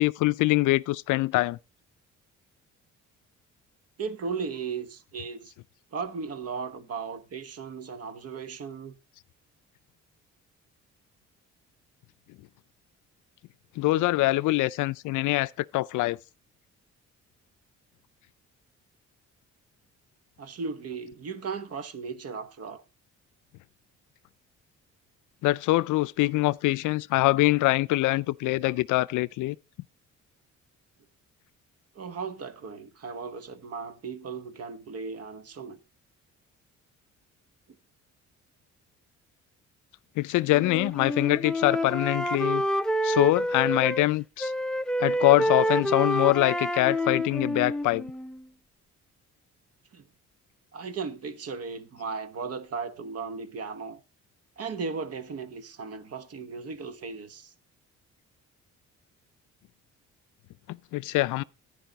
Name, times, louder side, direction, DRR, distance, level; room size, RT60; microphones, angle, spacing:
voice 1, 0.0-1.6 13.8-16.2 25.4-29.6 40.2-42.6 43.0-44.5 45.0-48.1 60.7-61.4, left 19 dB, 85° left, 0.5 m, -24 dB
voice 2, 4.0-5.5 5.9-9.0 20.4-22.8 31.9-35.8 49.9-50.0 50.7-54.0 54.6-57.5 61.0-61.2, right 5 dB, 55° right, 1.3 m, -36 dB
Wind instrument woodwind instrument, 40.5-44.1 44.4-48.4, equal, ahead, 0.5 m, -28 dB
10.5 x 9.8 x 3.9 m
cardioid pair, 90°, 30 cm